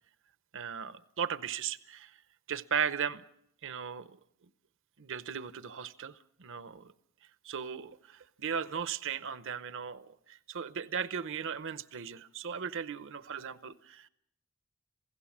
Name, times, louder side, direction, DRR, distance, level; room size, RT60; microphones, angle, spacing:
voice 1, 0.5-2.1 2.5-3.2 3.6-4.2 5.0-6.9 7.4-14.1, right 7 dB, 60° right, 0.8 m, -37 dB
27.5 x 16.5 x 7.3 m
head